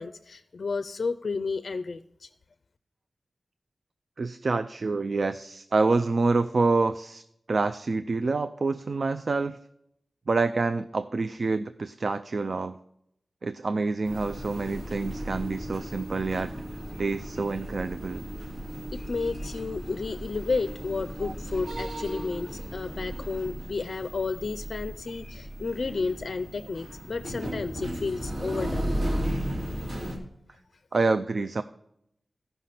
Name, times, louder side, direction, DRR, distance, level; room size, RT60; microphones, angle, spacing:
voice 1, 0.0-2.0 18.9-28.9, left 4 dB, 70° left, 11 dB, 0.4 m, -32 dB
voice 2, 4.2-7.2 7.5-9.6 10.3-12.8 13.4-16.5 17.0-18.2 21.2-21.3 30.9-31.6, right 3 dB, 65° right, 11 dB, 0.4 m, -27 dB
sound 1, 14.0-30.2, equal, 80° right, 2.6 m, -35 dB
14.0 x 5.5 x 5.8 m, 0.78 s
wide cardioid pair, 75°, 0 cm